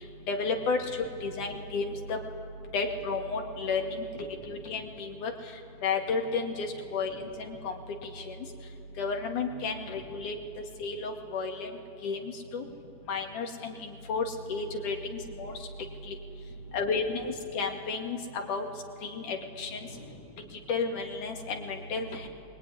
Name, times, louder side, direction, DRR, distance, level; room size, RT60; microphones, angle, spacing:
voice 1, 0.3-0.8 1.2-2.2 2.7-4.0 4.5-5.3 5.8-7.1 7.6-7.7 8.3-8.4 9.0-10.4 10.8-11.7 12.0-12.2 12.5-12.6 13.1-13.7 14.1-15.0 15.4-15.5 16.1-16.2 16.7-18.2 18.5-18.6 19.0-19.8 20.7-22.3, left 4 dB, 75° left, 2 dB, 3.9 m, -32 dB
voice 2, 1.0-1.4 2.7-2.8 4.1-4.5 6.9-7.2 9.9-10.3 12.5-13.1 16.5-16.9 19.7-20.4, equal, 80° right, -2 dB, 9.2 m, -55 dB
25.5 x 23.0 x 10.0 m, 3.0 s
omnidirectional pair, 3.6 m